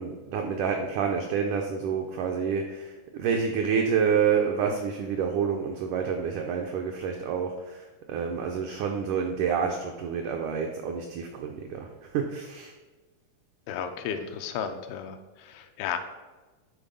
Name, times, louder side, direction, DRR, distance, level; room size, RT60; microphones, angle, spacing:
voice 1, 0.0-12.7, right 6 dB, 85° right, 3 dB, 1.7 m, -28 dB
voice 2, 13.7-16.0, left 8 dB, 85° left, 7 dB, 2.6 m, -33 dB
9.5 x 4.1 x 5.3 m, 1.2 s
omnidirectional pair, 4.4 m